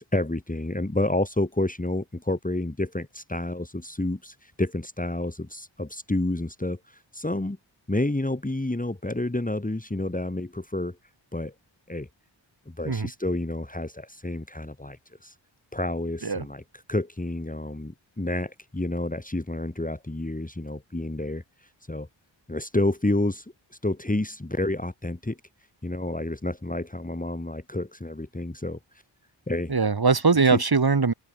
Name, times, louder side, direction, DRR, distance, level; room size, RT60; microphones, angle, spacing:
voice 1, 0.0-7.6 7.9-11.0 11.3-11.5 11.9-12.1 12.7-15.3 15.7-16.6 16.9-22.1 22.5-23.5 23.8-25.4 25.8-29.0 29.5-29.7 30.4-30.6, left 1 dB, 15° left, 3.3 m, -29 dB
voice 2, 29.7-31.1, right 4 dB, 50° right, 3.1 m, -21 dB
wide cardioid pair, 80°, 47 cm